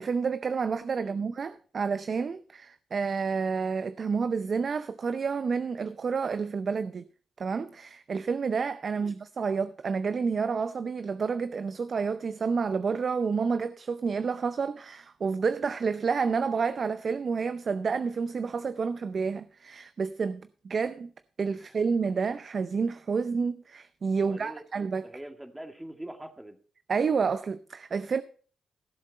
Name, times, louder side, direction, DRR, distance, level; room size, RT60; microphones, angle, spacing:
voice 1, 0.0-7.1 7.4-21.1 21.4-25.2 26.9-28.2, right 5 dB, 55° right, 0.6 m, -29 dB
voice 2, 24.0-24.6 25.0-26.6, right 1 dB, 10° right, 2.2 m, -43 dB
16.0 x 7.4 x 4.2 m
supercardioid pair, 45°, 0 cm